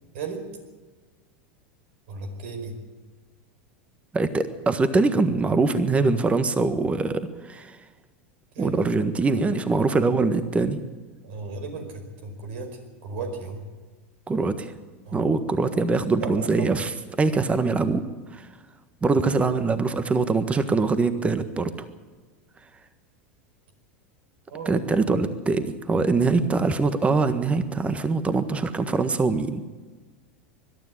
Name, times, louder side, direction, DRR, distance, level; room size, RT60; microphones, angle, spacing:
voice 1, 0.1-0.5 2.1-2.7 8.5-8.8 11.2-13.7 15.0-15.3 16.2-16.8 24.5-25.2, right 4 dB, 70° right, 6 dB, 4.8 m, -35 dB
voice 2, 4.1-7.2 7.5-7.8 8.6-10.8 14.3-14.7 15.1-18.0 18.3-18.5 19.0-21.7 24.6-29.6, right 3 dB, 20° right, 11 dB, 1.5 m, -23 dB
21.5 x 12.5 x 10.0 m, 1.3 s
hypercardioid pair, 100°, 7 cm